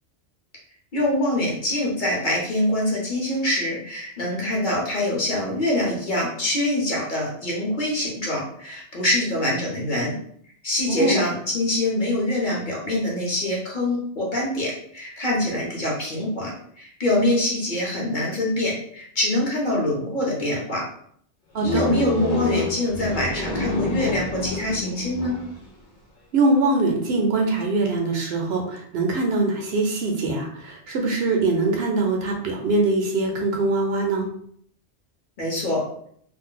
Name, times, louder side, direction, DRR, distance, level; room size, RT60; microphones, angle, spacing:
voice 1, 0.9-10.1 10.6-16.5 16.8-20.9 21.6-25.4 35.4-35.8, left 1 dB, 45° left, -3 dB, 0.9 m, -24 dB
voice 2, 10.9-11.3 21.5-21.9 26.3-34.3, right 2 dB, 65° right, 1 dB, 0.8 m, -23 dB
sound 1, 21.6-25.7, left 3 dB, 75° left, 1.0 m, -29 dB
2.5 x 2.1 x 3.7 m, 0.64 s
omnidirectional pair, 1.2 m